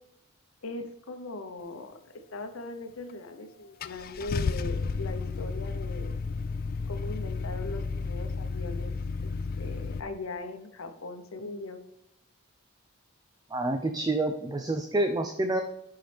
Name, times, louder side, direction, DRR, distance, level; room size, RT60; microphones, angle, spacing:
voice 1, 0.6-1.9 2.3-6.1 6.9-11.8, left 2 dB, 85° left, 7 dB, 0.8 m, -40 dB
Car / Engine starting, 3.1-3.2 3.8-10.0, left 4 dB, 45° left, 0.4 m, -32 dB
voice 2, 13.5-15.6, right 2 dB, 20° right, 6 dB, 0.4 m, -28 dB
10.5 x 5.7 x 3.4 m, 0.85 s
head